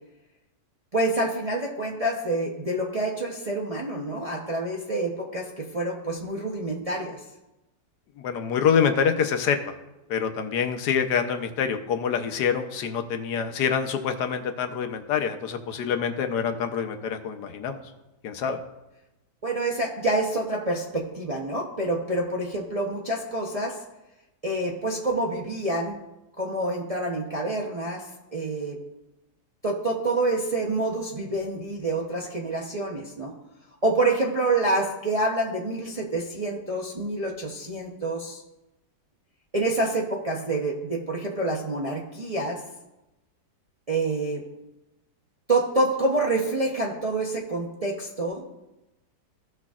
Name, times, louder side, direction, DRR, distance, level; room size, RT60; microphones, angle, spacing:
voice 1, 0.9-7.2 19.4-23.8 24.4-26.0 26.4-28.8 29.6-33.3 33.8-38.4 39.5-42.6 43.9-44.4 45.5-48.4, right 2 dB, 35° right, -2 dB, 0.6 m, -27 dB
voice 2, 8.2-9.7 10.1-17.8 18.2-18.6, left 7 dB, 75° left, 7 dB, 1.3 m, -26 dB
15.5 x 6.2 x 2.4 m, 0.97 s
omnidirectional pair, 1.8 m